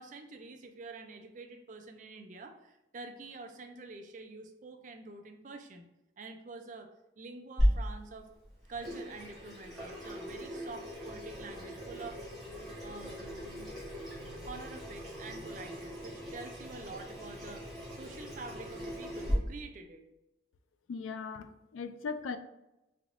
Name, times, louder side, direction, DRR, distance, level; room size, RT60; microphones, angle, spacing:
voice 1, 0.0-5.9 6.2-8.3 8.7-12.2 12.8-13.7 14.4-20.0, right 3 dB, 40° right, 5 dB, 0.4 m, -47 dB
Water tap faucet / Sink (filling or washing), 7.6-19.3, equal, ahead, 1.5 m, -37 dB
voice 2, 20.9-22.4, left 5 dB, 90° left, 10 dB, 0.3 m, -38 dB
3.7 x 3.3 x 2.4 m, 0.94 s
head